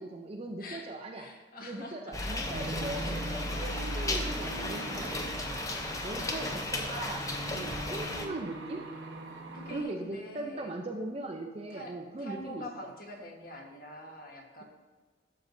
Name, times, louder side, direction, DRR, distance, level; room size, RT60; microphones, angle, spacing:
voice 1, 0.0-1.3 1.6-5.3 6.0-8.8 9.7-12.6, right 2 dB, 30° right, 2 dB, 0.5 m, -39 dB
voice 2, 1.1-2.4 2.9-3.2 3.4-3.8 5.7-6.7 7.6-7.9 9.3-10.7 11.7-14.6, left 1 dB, 50° left, 1 dB, 1.3 m, -46 dB
sound 1, 2.1-8.3, left 2 dB, 15° left, 0.6 m, -35 dB
sound 2, 2.5-9.8, right 2 dB, 85° right, 1.2 m, -41 dB
11.5 x 6.6 x 2.7 m, 1.4 s
head